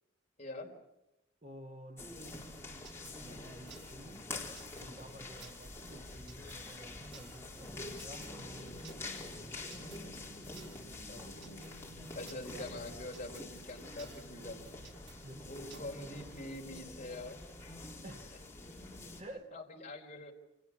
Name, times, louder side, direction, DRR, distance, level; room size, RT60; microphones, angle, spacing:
voice 1, 0.4-0.7 9.8-11.7 12.1-14.6 15.4-17.4 18.0-18.1 19.5-20.3, left 2 dB, 35° left, 0 dB, 4.0 m, -46 dB
voice 2, 1.4-2.1 3.2-4.3 4.8-9.5 11.1-11.3 12.5-12.8 15.2-15.5 18.0-18.5 19.2-19.5, right 1 dB, 35° right, 4 dB, 1.5 m, -51 dB
sound 1, 2.0-19.2, left 2 dB, 15° left, 4.1 m, -46 dB
sound 2, 2.9-16.4, right 7 dB, 65° right, 2.2 m, -57 dB
29.5 x 26.5 x 6.1 m, 0.91 s
head